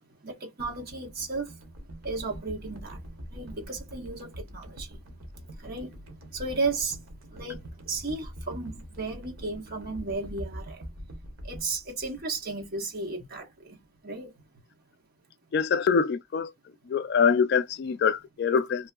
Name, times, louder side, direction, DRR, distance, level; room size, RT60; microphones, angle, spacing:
voice 1, 0.2-1.5 2.0-3.0 3.3-5.0 5.6-5.9 6.3-7.0 7.3-10.9 11.4-13.8 14.0-14.3, right 3 dB, 50° right, 1.3 m, -34 dB
sound 1, 0.6-12.9 13.2-13.4, equal, 80° right, 1.0 m, -44 dB
voice 2, 15.5-16.5 16.9-18.9, left 6 dB, 55° left, 0.3 m, -24 dB
3.0 x 2.7 x 2.3 m
head